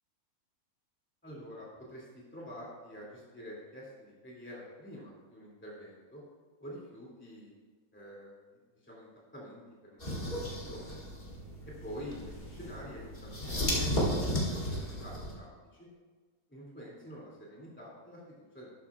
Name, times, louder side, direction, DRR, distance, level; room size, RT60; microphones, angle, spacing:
voice 1, 1.2-6.2 6.6-7.5 7.9-8.5 8.8-10.9 11.8-14.2 14.6-15.9 16.5-18.7, equal, 10° left, -5 dB, 2.5 m, -47 dB
sound 1, 10.0-15.3, equal, 40° left, 2.5 m, -34 dB
12.5 x 10.5 x 2.4 m, 1.4 s
omnidirectional pair, 1.5 m